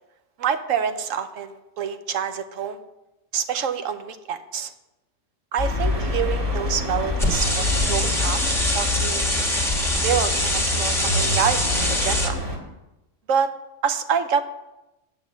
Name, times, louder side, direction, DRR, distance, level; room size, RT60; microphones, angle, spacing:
voice 1, 0.4-2.8 3.3-4.7 5.5-8.4 8.7-9.3 10.0-11.6 11.9-12.4 13.3-13.5 13.8-14.4, right 7 dB, 85° right, 10 dB, 1.1 m, -26 dB
sound 1, 5.6-12.6, left 2 dB, 25° right, 1.9 m, -26 dB
sound 2, 7.2-12.3, left 1 dB, ahead, 1.1 m, -24 dB
9.0 x 5.9 x 7.4 m, 0.96 s
omnidirectional pair, 1.3 m